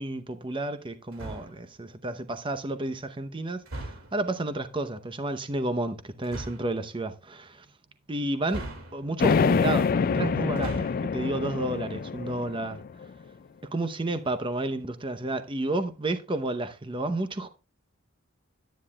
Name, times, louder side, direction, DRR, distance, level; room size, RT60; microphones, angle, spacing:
voice 1, 0.0-3.6 4.1-7.6 8.1-8.6 8.9-12.8 13.7-17.5, right 2 dB, 25° right, 0.7 m, -31 dB
sound 1, 1.1-1.7 3.6-4.3 6.2-6.7 8.5-9.3 10.4-11.1, right 2 dB, 85° right, 2.2 m, -39 dB
sound 2, 9.2-13.1, left 5 dB, 45° left, 0.3 m, -26 dB
10.5 x 9.8 x 2.3 m
head